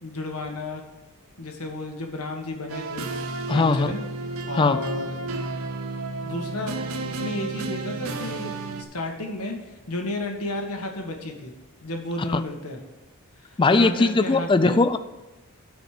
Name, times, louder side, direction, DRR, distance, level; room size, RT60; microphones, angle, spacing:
voice 1, 0.0-0.8 1.4-3.1 3.5-4.0 4.5-5.1 6.2-6.7 7.0-9.6 9.9-11.5 11.8-12.8 13.7-14.8, left 2 dB, 80° left, 3 dB, 1.6 m, -32 dB
sound 1, 2.7-8.8, right 3 dB, 70° right, 0.8 m, -32 dB
voice 2, 3.5-3.9 4.5-4.8 12.3-12.4 13.6-15.0, left 3 dB, 20° left, 12 dB, 0.4 m, -19 dB
9.4 x 5.2 x 6.5 m, 1.1 s
head